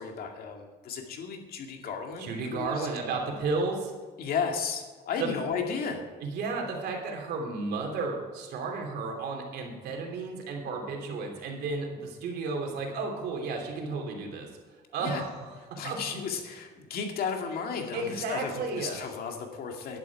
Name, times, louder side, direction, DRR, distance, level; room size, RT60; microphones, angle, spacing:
voice 1, 0.0-2.9 4.2-6.1 15.0-15.2 15.8-20.0, left 6 dB, 65° left, 3 dB, 2.2 m, -34 dB
voice 2, 2.2-3.9 5.2-5.3 6.2-14.5 14.9-16.0 17.9-19.0, right 3 dB, 70° right, 2 dB, 3.0 m, -33 dB
11.0 x 11.0 x 4.8 m, 1.4 s
cardioid pair, 110°, 17 cm